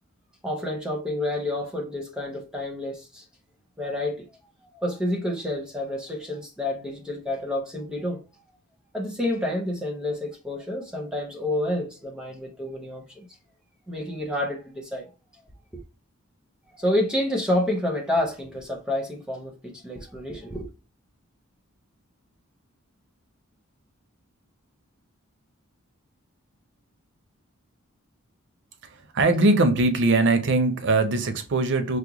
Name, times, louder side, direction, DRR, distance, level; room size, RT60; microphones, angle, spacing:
voice 1, 0.4-3.2 3.8-4.3 4.7-8.2 8.9-13.3 13.9-15.1 16.7-20.7, left 1 dB, 5° right, 0.5 m, -29 dB
voice 2, 29.1-32.0, right 2 dB, 60° right, 0.6 m, -21 dB
4.8 x 2.1 x 2.9 m
head